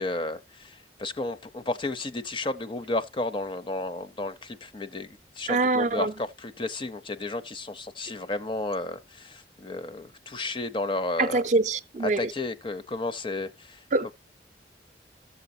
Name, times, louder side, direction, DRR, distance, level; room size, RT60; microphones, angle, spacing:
voice 1, 0.0-11.5 12.0-14.1, left 2 dB, 30° left, 0.5 m, -33 dB
voice 2, 5.5-6.1 11.2-12.3 13.9-14.1, right 3 dB, 40° right, 0.5 m, -24 dB
14.5 x 6.9 x 2.6 m
head